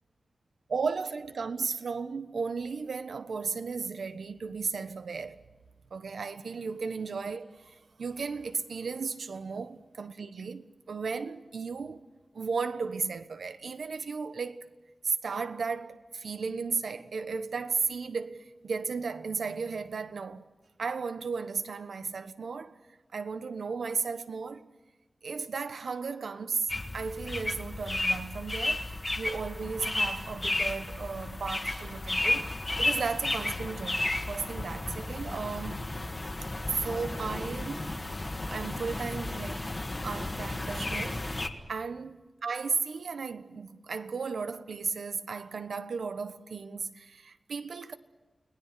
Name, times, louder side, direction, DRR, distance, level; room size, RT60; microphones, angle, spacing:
voice 1, 0.7-5.4 5.9-12.0 12.3-14.7 15.0-20.4 20.8-22.7 23.1-24.7 25.2-32.5 32.8-35.9 36.7-39.7 40.0-42.1 42.4-47.9, right 5 dB, 85° right, 1.2 m, -35 dB
sound 1, 26.7-41.5, left 2 dB, 25° left, 1.7 m, -33 dB
29.5 x 19.5 x 7.7 m
wide cardioid pair, 115°, 0 cm